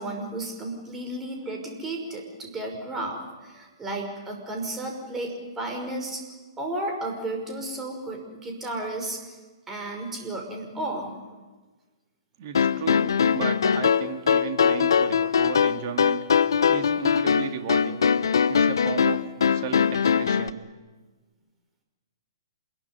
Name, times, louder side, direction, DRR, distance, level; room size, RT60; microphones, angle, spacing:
voice 1, 0.0-6.2 6.6-9.2 9.7-11.2, right 2 dB, 15° right, 2 dB, 5.7 m, -33 dB
voice 2, 12.4-16.2 16.7-18.0 18.5-19.2 19.5-20.6, right 8 dB, 45° right, 6 dB, 2.8 m, -34 dB
sound 1, 12.5-20.5, left 7 dB, 65° left, 0.9 m, -22 dB
27.5 x 22.0 x 9.9 m, 1.3 s
figure-of-eight pair, 120°, 2 cm